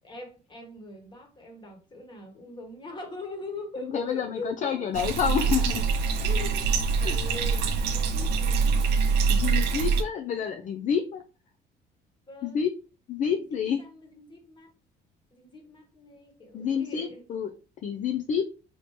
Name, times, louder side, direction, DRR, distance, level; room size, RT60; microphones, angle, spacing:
voice 1, 0.0-5.3 6.2-8.9 9.4-9.7 12.3-12.7 13.3-14.7 15.3-17.2, left 2 dB, 25° left, 1.4 m, -41 dB
voice 2, 3.8-5.8 7.0-7.2 9.3-11.2 12.4-12.7 13.1-13.8 16.5-17.5 17.8-18.4, left 7 dB, 50° left, 0.5 m, -28 dB
Bathtub (filling or washing), 4.9-10.0, right 5 dB, 80° right, 0.7 m, -24 dB
4.4 x 2.8 x 3.2 m
cardioid pair, 110°, 17 cm